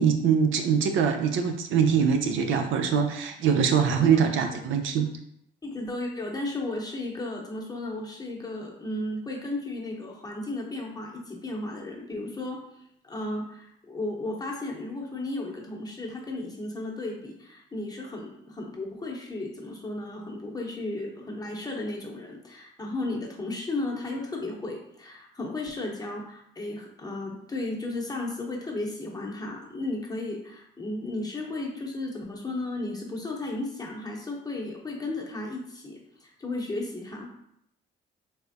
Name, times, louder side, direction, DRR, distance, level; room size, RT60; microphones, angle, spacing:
voice 1, 0.0-5.1, right 7 dB, 80° right, 5 dB, 0.5 m, -23 dB
voice 2, 3.9-4.3 5.0-5.1 5.6-12.6 13.0-37.3, left 2 dB, 20° left, -1 dB, 0.8 m, -34 dB
3.4 x 3.2 x 2.6 m, 0.74 s
cardioid pair, 90°, 20 cm